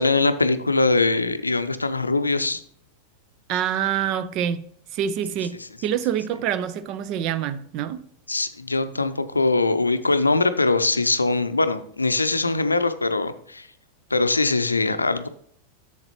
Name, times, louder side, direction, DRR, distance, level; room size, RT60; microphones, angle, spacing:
voice 1, 0.0-2.6 8.3-13.7 14.1-15.3, left 3 dB, 80° left, 0.5 m, -22 dB
voice 2, 3.5-4.6 4.9-5.6 5.8-8.0, right 9 dB, 40° right, 0.5 m, -26 dB
7.7 x 7.2 x 2.9 m
figure-of-eight pair, 90°, 0 cm